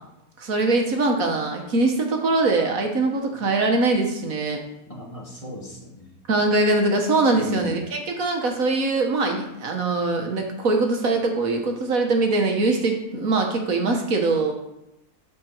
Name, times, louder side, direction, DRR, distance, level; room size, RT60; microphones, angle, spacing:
voice 1, 0.4-4.6 6.3-14.5, right 3 dB, 60° right, 3 dB, 1.7 m, -22 dB
voice 2, 4.9-6.2 7.3-7.8, left 2 dB, 20° left, -2 dB, 1.8 m, -37 dB
13.0 x 5.3 x 4.5 m, 0.85 s
omnidirectional pair, 1.7 m